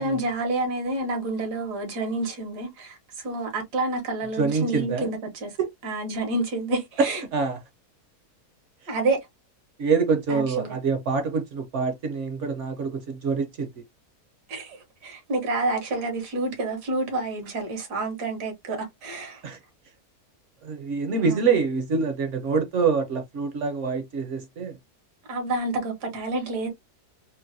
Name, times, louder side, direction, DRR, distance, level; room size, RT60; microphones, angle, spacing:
voice 1, 0.0-5.5 5.8-7.2 8.9-9.2 10.3-10.7 14.5-14.8 15.0-19.4 21.2-21.4 25.3-26.7, right 2 dB, 85° right, 1.7 m, -28 dB
voice 2, 4.4-5.1 5.6-5.7 7.0-7.6 9.8-13.7 19.4-19.6 20.6-24.8, right 5 dB, 60° right, 0.8 m, -25 dB
3.7 x 2.1 x 2.6 m
omnidirectional pair, 1.7 m